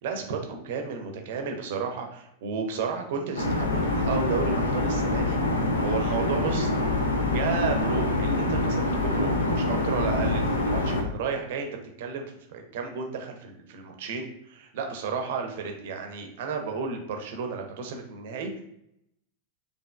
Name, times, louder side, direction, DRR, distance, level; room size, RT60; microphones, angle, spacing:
voice 1, 0.0-5.4 5.8-6.7 7.3-11.7 12.0-18.6, right 5 dB, 55° right, 4 dB, 0.6 m, -32 dB
sound 1, 3.4-11.0, left 2 dB, 70° left, 0.5 m, -25 dB
4.4 x 2.6 x 2.2 m, 0.79 s
figure-of-eight pair, 90°, 0 cm